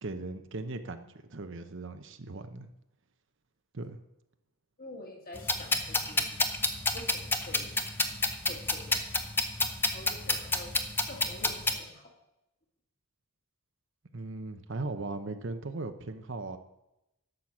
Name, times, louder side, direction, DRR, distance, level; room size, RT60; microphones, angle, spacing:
voice 1, 0.0-2.7 3.7-4.0 14.1-16.6, right 2 dB, 55° right, 8 dB, 0.8 m, -38 dB
voice 2, 4.8-6.3 6.9-7.7 8.5-9.0 9.9-10.7 11.0-12.1, left 2 dB, 40° left, 0 dB, 2.2 m, -47 dB
sound 1, 5.4-11.8, left 2 dB, 10° left, 0.7 m, -29 dB
12.0 x 6.5 x 7.3 m, 0.89 s
head